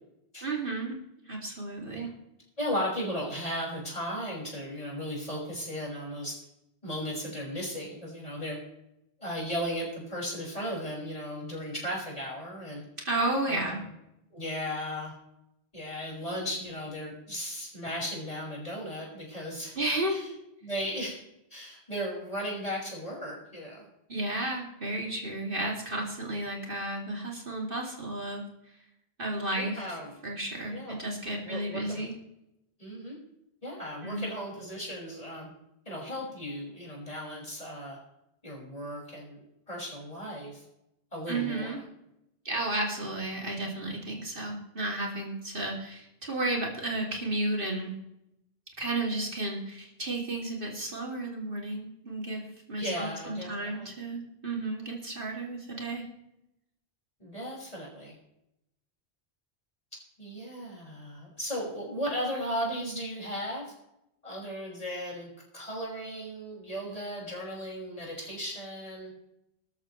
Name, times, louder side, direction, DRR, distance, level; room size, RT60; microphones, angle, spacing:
voice 1, 0.4-1.0 1.3-2.1 13.0-13.8 19.8-20.2 24.1-28.4 29.2-30.0 30.2-32.1 34.0-34.2 41.3-41.8 42.4-47.9 48.8-56.1, right 2 dB, 55° right, -1 dB, 2.8 m, -33 dB
voice 2, 2.6-6.4 6.8-8.6 9.2-12.8 13.5-13.9 14.3-15.1 15.7-19.8 20.1-20.3 20.6-21.2 21.5-23.9 29.5-30.1 30.7-31.0 31.4-32.0 32.8-33.2 33.6-35.5 35.9-38.0 38.4-39.4 39.7-40.6 41.1-41.7 52.8-53.9 57.2-58.1 60.2-63.7 64.2-69.1, equal, 35° left, -3 dB, 5.8 m, -36 dB
18.5 x 13.5 x 3.2 m, 0.83 s
omnidirectional pair, 1.1 m